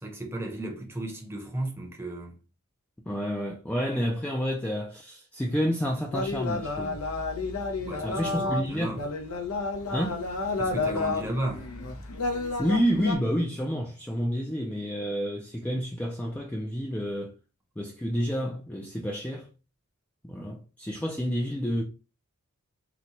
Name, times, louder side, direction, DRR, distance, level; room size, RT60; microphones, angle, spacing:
voice 1, 0.0-2.4 7.8-9.0 10.6-11.7, right 1 dB, 10° right, 0.7 m, -34 dB
voice 2, 3.1-7.0 8.0-9.0 9.9-10.2 12.6-17.4 17.8-19.5 20.2-21.8, equal, 5° left, 0.3 m, -29 dB
sound 1, 6.1-13.2, left 3 dB, 85° left, 0.7 m, -31 dB
3.9 x 2.2 x 2.9 m
head